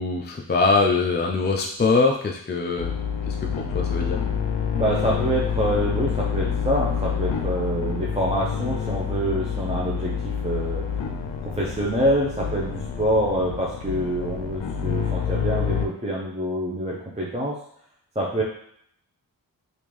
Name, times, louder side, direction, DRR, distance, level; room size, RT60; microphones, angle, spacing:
voice 1, 0.0-2.9 3.3-4.2, left 4 dB, 25° left, 1 dB, 0.4 m, -23 dB
sound 1, 2.8-15.9, left 7 dB, 85° left, 0.5 m, -27 dB
voice 2, 4.7-10.8 11.4-17.6 18.2-18.4, right 1 dB, 15° right, -4 dB, 0.7 m, -26 dB
3.5 x 2.6 x 3.1 m, 0.69 s
cardioid pair, 50°, 42 cm